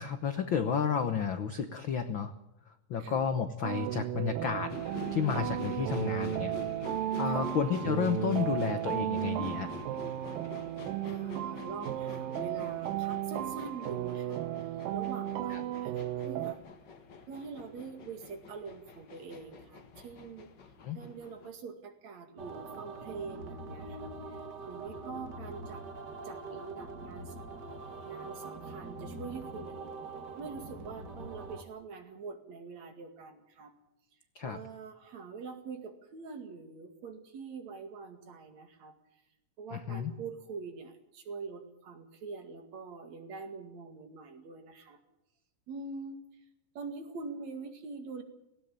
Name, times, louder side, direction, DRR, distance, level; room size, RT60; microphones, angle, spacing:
voice 1, 0.0-2.3 2.9-4.7 5.1-6.5 7.2-9.7 15.5-15.6 20.8-21.0 34.3-34.6 39.7-40.1, left 7 dB, 65° left, 9 dB, 1.2 m, -31 dB
sound 1, 3.6-16.5, right 13 dB, 90° right, 2.7 m, -34 dB
sound 2, 4.7-21.5, left 4 dB, 40° left, 1.8 m, -46 dB
voice 2, 10.8-16.6 17.3-20.5 20.9-25.8 26.2-27.3 28.0-29.8 30.4-33.7 34.4-38.9 39.6-45.0 45.7-46.2 46.7-48.2, right 4 dB, 55° right, 7 dB, 3.4 m, -44 dB
sound 3, 22.4-31.6, right 3 dB, 40° right, 1.9 m, -43 dB
18.0 x 17.5 x 8.9 m, 0.85 s
omnidirectional pair, 3.8 m